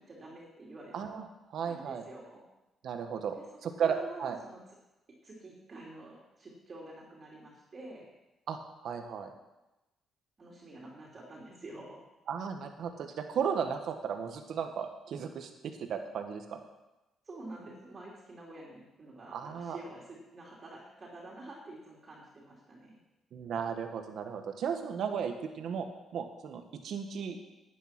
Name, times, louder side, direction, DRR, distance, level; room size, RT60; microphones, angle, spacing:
voice 1, 0.0-0.9 1.6-2.4 3.3-3.4 3.8-4.6 5.2-8.1 10.4-12.0 17.2-23.0, right 2 dB, 35° right, -4 dB, 3.2 m, -48 dB
voice 2, 0.9-2.0 2.8-4.4 8.5-9.3 12.3-16.6 19.3-19.8 23.3-25.9 26.1-27.4, right 7 dB, 70° right, 6 dB, 1.5 m, -35 dB
11.0 x 9.4 x 6.1 m, 0.99 s
cardioid pair, 90°, 0 cm